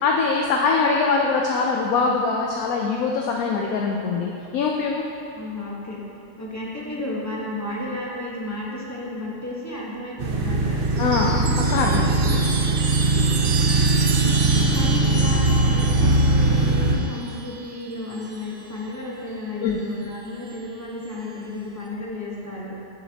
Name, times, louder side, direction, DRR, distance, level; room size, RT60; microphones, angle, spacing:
voice 1, 0.0-5.0 11.0-11.4 11.7-12.4 19.6-19.8, left 4 dB, 70° left, 0 dB, 1.0 m, -23 dB
voice 2, 5.3-6.0 6.4-10.9 13.4-14.2 14.7-22.7, left 1 dB, 10° left, -5 dB, 1.0 m, -33 dB
sound 1, 10.2-17.0, right 2 dB, 45° right, 0.8 m, -20 dB
Chime, 10.9-18.7 19.9-20.5, right 4 dB, 75° right, 1.4 m, -32 dB
11.0 x 7.0 x 2.8 m, 2.8 s
omnidirectional pair, 1.7 m